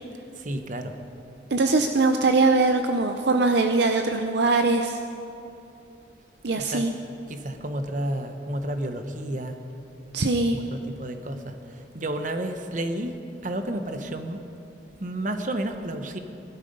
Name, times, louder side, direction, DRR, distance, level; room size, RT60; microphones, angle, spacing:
voice 1, 0.4-0.9 6.6-6.9 7.3-9.6 10.5-11.5 11.9-13.1 13.4-14.4 15.0-16.2, right 1 dB, 40° right, 7 dB, 0.9 m, -31 dB
voice 2, 1.5-5.0 6.4-6.9 10.1-10.6, right 3 dB, 60° right, 6 dB, 0.6 m, -21 dB
17.5 x 12.5 x 5.3 m, 2.8 s
head